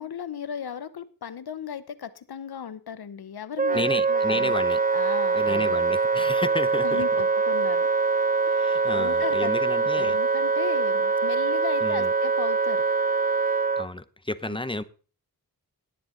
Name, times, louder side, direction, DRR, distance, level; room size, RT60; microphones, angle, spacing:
voice 1, 0.0-4.6 4.9-5.8 6.8-7.9 8.5-12.8 14.5-14.6, left 8 dB, 75° left, 1.0 m, -36 dB
Wind instrument woodwind instrument, 3.6-13.9, right 4 dB, 20° right, 0.8 m, -23 dB
voice 2, 3.7-4.8 5.3-7.0 8.5-10.2 11.8-12.1 13.8-14.8, left 1 dB, 15° left, 0.9 m, -32 dB
17.5 x 7.9 x 3.9 m
cardioid pair, 45°, 38 cm